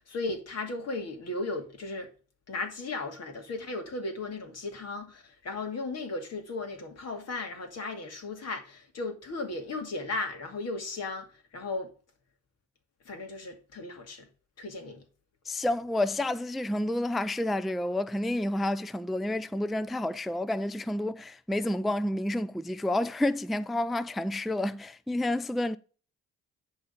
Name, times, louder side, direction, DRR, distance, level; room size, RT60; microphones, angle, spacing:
voice 1, 0.0-2.1 2.5-11.9 13.0-14.3 14.6-15.0, left 3 dB, 55° left, 2.5 m, -36 dB
voice 2, 15.5-25.8, left 1 dB, ahead, 0.3 m, -29 dB
10.5 x 3.9 x 5.1 m
cardioid pair, 90°, 30 cm